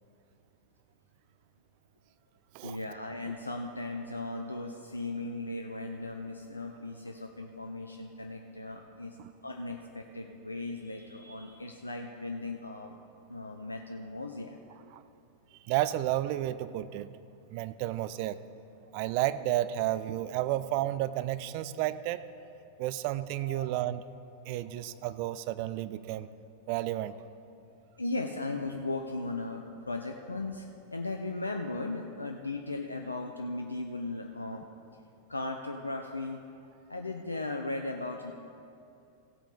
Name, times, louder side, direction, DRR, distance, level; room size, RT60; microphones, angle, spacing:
voice 1, 2.6-9.2 9.4-13.0 13.3-14.6 22.8-23.0 23.4-23.7 24.8-24.9 28.0-34.6 35.3-36.4 36.9-38.3, left 2 dB, 80° left, 4 dB, 0.5 m, -37 dB
voice 2, 15.6-17.1 17.5-18.4 18.9-22.2 22.8-24.0 24.4-26.3 26.7-27.2, right 14 dB, 45° right, 14 dB, 0.4 m, -31 dB
16.0 x 8.0 x 3.9 m, 2.5 s
figure-of-eight pair, 90°, 0 cm